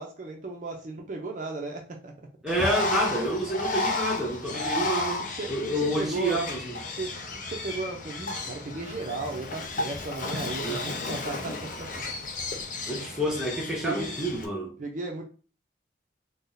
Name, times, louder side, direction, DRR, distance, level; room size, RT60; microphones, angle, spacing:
voice 1, 0.0-2.1 5.3-6.4 6.9-11.9 13.8-14.1 14.8-15.2, right 3 dB, 45° right, 0.4 m, -35 dB
voice 2, 2.4-5.2 5.5-6.8 10.6-10.8 12.9-14.7, right 1 dB, 5° right, 0.6 m, -28 dB
Bird, 2.5-14.5, left 2 dB, 45° left, 0.5 m, -33 dB
2.6 x 2.1 x 3.8 m
head